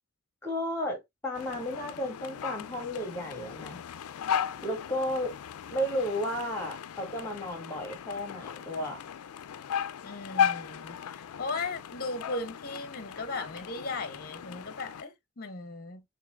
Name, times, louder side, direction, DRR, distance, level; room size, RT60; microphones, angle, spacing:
voice 1, 0.4-3.8 4.6-5.3 5.7-9.0, equal, 10° left, 2.0 m, -33 dB
sound 1, 1.3-15.0, left 8 dB, 80° left, 0.4 m, -36 dB
voice 2, 10.0-16.0, left 3 dB, 45° left, 0.8 m, -37 dB
6.7 x 2.8 x 2.4 m
head